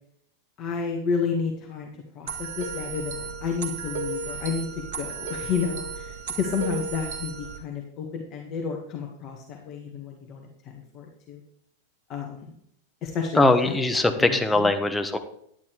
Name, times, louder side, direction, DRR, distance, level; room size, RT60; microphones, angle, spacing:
voice 1, 0.6-11.4 12.1-12.5 13.0-13.8 14.2-14.7, left 6 dB, 35° left, 1 dB, 1.8 m, -31 dB
sound 1, 2.3-7.6, right 5 dB, 50° right, 1.8 m, -34 dB
voice 2, 13.4-15.2, left 2 dB, 5° left, 5 dB, 1.2 m, -21 dB
11.0 x 10.5 x 3.4 m, 0.71 s
figure-of-eight pair, 90°, 0 cm